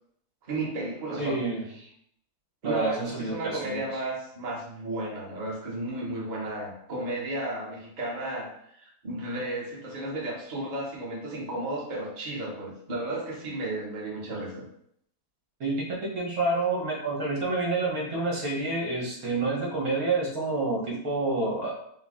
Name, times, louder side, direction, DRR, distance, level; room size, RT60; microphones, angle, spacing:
voice 1, 0.5-1.4 2.6-8.5 8.8-14.6, right 2 dB, 35° right, -4 dB, 1.0 m, -33 dB
voice 2, 1.2-1.7 2.6-4.0 15.6-21.7, right 3 dB, 65° right, -3 dB, 1.6 m, -28 dB
5.3 x 2.3 x 3.6 m, 0.70 s
omnidirectional pair, 1.7 m